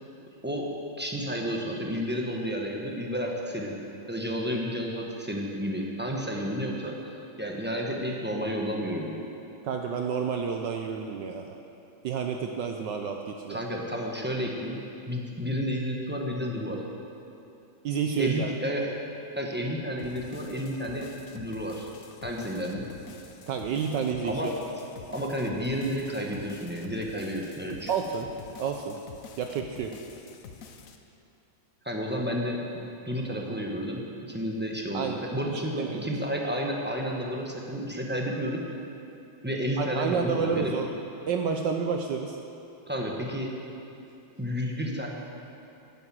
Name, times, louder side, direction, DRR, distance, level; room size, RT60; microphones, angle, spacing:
voice 1, 1.0-3.7 4.1-9.2 13.5-16.8 18.2-18.9 19.3-21.1 21.3-21.9 22.2-22.8 24.2-24.5 25.1-27.9 31.8-34.0 34.3-35.7 36.0-38.6 39.4-40.8 42.8-43.5 44.4-45.1, equal, 10° right, -1 dB, 0.8 m, -31 dB
voice 2, 9.6-11.6 12.0-13.6 17.8-18.5 23.5-24.5 27.9-28.3 28.6-28.9 29.4-29.9 34.9-35.2 35.5-36.0 39.8-40.9 41.3-42.4, right 6 dB, 70° right, 3 dB, 1.2 m, -30 dB
sound 1, 20.0-31.0, left 6 dB, 65° left, 0.8 m, -47 dB
10.5 x 9.4 x 7.6 m, 2.7 s
omnidirectional pair, 2.3 m